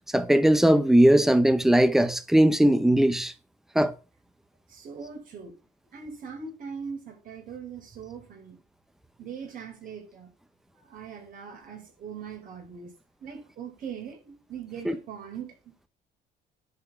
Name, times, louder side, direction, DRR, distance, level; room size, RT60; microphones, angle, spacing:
voice 1, 0.1-3.3 3.7-3.9 14.8-14.9, right 1 dB, ahead, 0.9 m, -19 dB
voice 2, 4.7-5.6 5.9-8.6 9.2-10.3 10.8-12.9 13.2-15.7, right 6 dB, 55° right, 4.5 m, -40 dB
10.5 x 4.7 x 6.9 m
cardioid pair, 110°, 17 cm